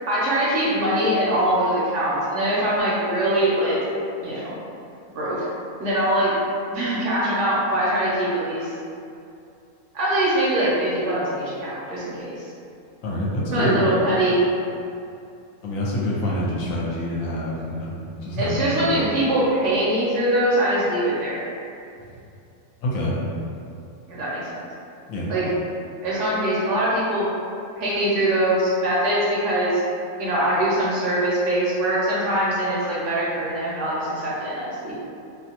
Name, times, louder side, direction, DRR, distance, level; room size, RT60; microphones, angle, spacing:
voice 1, 0.1-3.8 4.2-4.6 5.1-5.4 5.8-6.3 6.7-8.7 9.9-12.4 13.5-14.4 18.4-21.4 24.1-24.5 25.3-25.5 26.0-27.3 27.8-29.8 30.2-34.9, right 1 dB, 65° right, -7 dB, 0.8 m, -22 dB
voice 2, 13.0-13.8 15.6-19.1 22.8-23.2 25.1-25.3, left 1 dB, 70° left, -5 dB, 1.0 m, -26 dB
2.5 x 2.2 x 2.8 m, 2.6 s
omnidirectional pair, 1.6 m